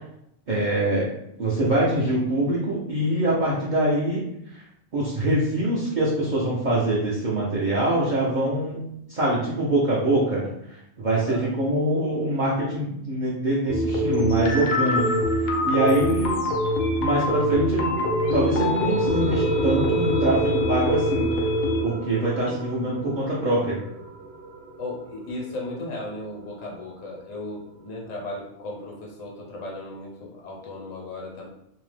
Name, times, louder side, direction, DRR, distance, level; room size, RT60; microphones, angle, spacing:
voice 1, 0.5-1.1 1.4-4.2 4.9-8.8 9.1-10.5 11.0-15.1 15.6-16.5 17.0-18.0 18.3-21.3 21.8-23.8, right 1 dB, 55° right, -7 dB, 0.5 m, -24 dB
voice 2, 11.1-11.5 16.0-16.2 24.8-31.5, left 2 dB, 80° left, -2 dB, 1.2 m, -36 dB
sound 1, 13.7-21.8, equal, 60° left, 0.7 m, -24 dB
sound 2, 17.3-28.2, right 3 dB, 70° right, 0.9 m, -35 dB
2.7 x 2.0 x 3.2 m, 0.77 s
omnidirectional pair, 1.4 m